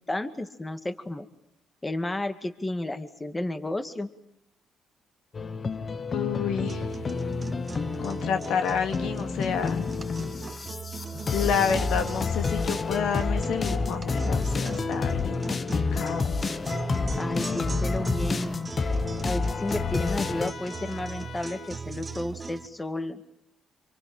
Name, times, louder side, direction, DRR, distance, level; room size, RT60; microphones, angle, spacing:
voice 1, 0.1-1.3 1.8-4.1 17.2-18.6 19.2-23.2, left 1 dB, 15° left, 9 dB, 2.2 m, -32 dB
sound 1, 5.3-20.5, left 4 dB, 35° left, 1.2 m, -29 dB
voice 2, 6.1-7.0 8.0-9.9 11.3-16.3, left 7 dB, 80° left, 6 dB, 2.7 m, -29 dB
sound 2, 6.7-22.7, right 4 dB, 25° right, 1.4 m, -38 dB
Trumpet, 19.3-21.8, left 7 dB, 55° left, 1.6 m, -44 dB
27.0 x 24.5 x 9.0 m, 0.77 s
cardioid pair, 90°, 0 cm